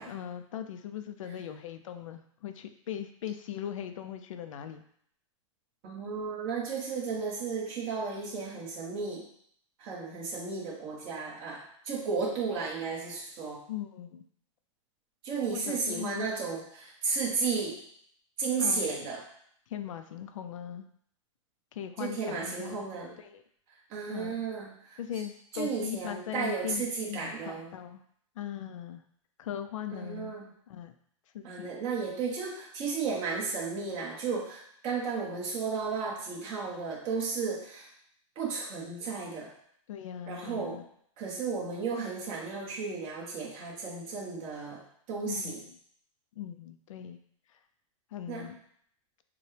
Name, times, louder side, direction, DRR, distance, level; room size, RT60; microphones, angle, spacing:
voice 1, 0.1-4.8 13.7-14.2 15.5-16.3 18.6-18.8 19.7-20.9 21.7-22.8 23.2-23.4 24.1-24.4 25.0-28.0 28.4-29.0 29.4-30.3 30.7-30.9 31.3-31.7 39.9-40.8 45.2-45.5 46.4-47.2 48.1-48.6, left 10 dB, 75° left, 8 dB, 0.5 m, -39 dB
voice 2, 5.8-9.2 9.8-13.6 15.2-17.8 18.4-19.2 22.0-23.2 23.9-25.0 25.5-27.7 29.9-30.5 31.4-37.9 38.3-39.5 40.3-40.8 41.2-45.6 48.3-48.5, right 5 dB, 30° right, -3 dB, 1.2 m, -34 dB
6.8 x 2.3 x 3.3 m, 0.66 s
supercardioid pair, 155°, 17 cm